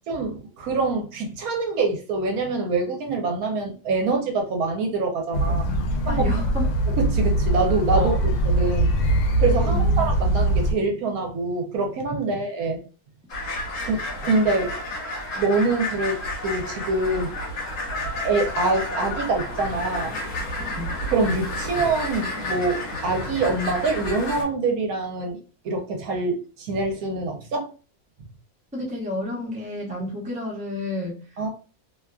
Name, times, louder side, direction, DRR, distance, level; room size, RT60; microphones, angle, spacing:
voice 1, 0.1-5.6 6.1-6.2 6.9-9.0 9.4-12.8 13.8-14.7 15.4-17.3 18.2-20.2 21.1-25.4 25.6-27.7 31.4-31.5, right 3 dB, 70° right, 1.0 m, -25 dB
sound 1, 5.3-10.7, right 1 dB, 80° left, 1.1 m, -22 dB
voice 2, 5.5-5.8 6.1-6.7 7.9-8.2 9.6-10.0 20.8-20.9 28.7-31.2, left 1 dB, 5° right, 0.6 m, -30 dB
sound 2, 13.3-24.4, left 1 dB, 60° left, 1.2 m, -31 dB
2.8 x 2.4 x 2.3 m
omnidirectional pair, 1.6 m